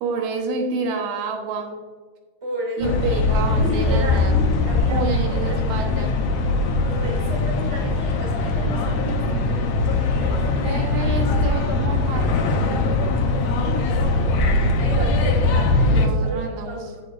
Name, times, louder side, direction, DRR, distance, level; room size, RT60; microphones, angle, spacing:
voice 1, 0.0-1.7 2.8-6.2 10.0-12.3 15.9-16.9, right 4 dB, 85° right, 2 dB, 3.1 m, -29 dB
voice 2, 2.4-5.0 5.4-5.6 6.8-9.3 13.2-13.3 13.6-14.3 14.8-17.0, equal, 10° right, -3 dB, 1.7 m, -32 dB
sound 1, 2.8-16.1, left 2 dB, 80° left, 1.5 m, -21 dB
13.5 x 6.0 x 2.6 m, 1.4 s
omnidirectional pair, 4.4 m